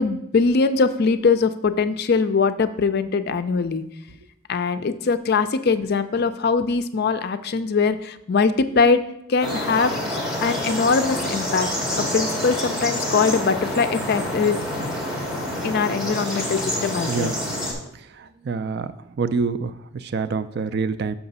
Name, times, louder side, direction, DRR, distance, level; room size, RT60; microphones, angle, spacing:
voice 1, 0.0-3.8 4.5-9.0 9.3-14.6 15.6-17.4, left 4 dB, 45° left, 11 dB, 0.4 m, -22 dB
sound 1, 9.4-17.7, left 1 dB, 5° right, 1.9 m, -27 dB
voice 2, 18.2-18.9 19.2-21.1, right 4 dB, 50° right, 12 dB, 0.4 m, -26 dB
5.8 x 5.8 x 5.4 m, 0.79 s
head